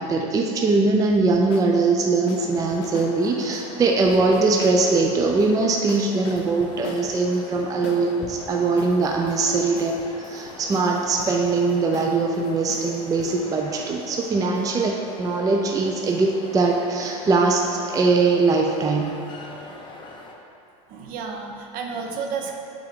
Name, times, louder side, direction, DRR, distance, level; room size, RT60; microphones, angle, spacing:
voice 1, 0.0-19.1, right 3 dB, 20° right, 1 dB, 0.4 m, -21 dB
sound 1, 1.1-1.7 2.3-3.1 3.4-4.8 5.4-5.5 5.9-8.1 8.8-14.4, left 7 dB, 65° left, 0.6 m, -42 dB
sound 2, 2.3-20.3, left 2 dB, 30° left, 0.8 m, -42 dB
voice 2, 20.9-22.5, right 5 dB, 55° right, 2 dB, 0.8 m, -31 dB
7.6 x 3.5 x 3.6 m, 2.6 s
supercardioid pair, 100°, 17 cm